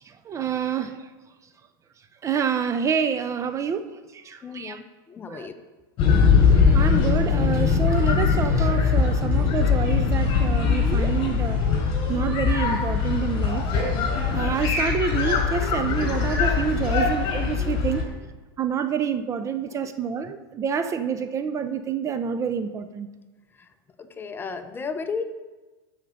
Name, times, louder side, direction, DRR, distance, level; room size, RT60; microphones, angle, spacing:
voice 1, 0.1-1.0 2.2-4.8 5.3-5.5 6.7-11.6 12.1-13.7 14.3-18.0 18.6-23.1, right 7 dB, 25° right, 10 dB, 0.5 m, -27 dB
voice 2, 4.4-5.5 23.6-23.7 24.0-25.2, left 5 dB, 15° left, 9 dB, 0.7 m, -34 dB
sound 1, 6.0-18.0, left 5 dB, 40° left, 3.6 m, -21 dB
12.5 x 5.1 x 6.4 m, 1.2 s
supercardioid pair, 130°, 13 cm